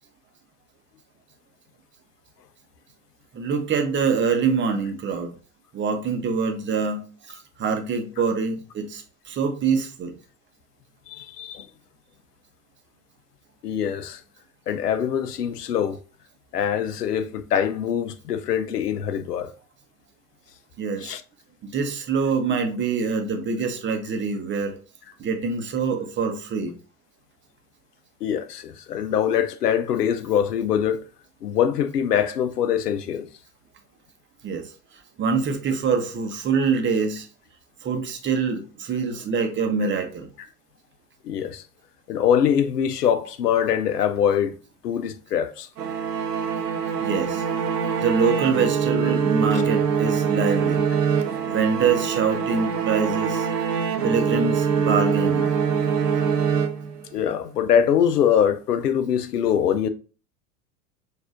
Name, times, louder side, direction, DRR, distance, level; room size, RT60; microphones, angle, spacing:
voice 1, 3.3-5.3 5.7-10.1 20.8-21.1 21.6-24.8 25.2-26.7 34.4-34.7 35.2-37.3 37.8-40.3 47.0-47.4 48.0-50.8 51.4-53.5 54.0-55.6, right 5 dB, 25° right, 0.8 m, -25 dB
voice 2, 11.1-11.7 13.6-14.2 14.7-16.0 16.5-19.5 21.0-21.2 28.2-31.0 31.4-33.3 41.2-41.6 42.1-44.6 44.8-45.7 57.1-59.9, left 8 dB, 85° left, 0.6 m, -23 dB
sound 1, 45.8-57.2, right 6 dB, 90° right, 0.7 m, -24 dB
5.9 x 2.7 x 2.4 m
hypercardioid pair, 85°, 46 cm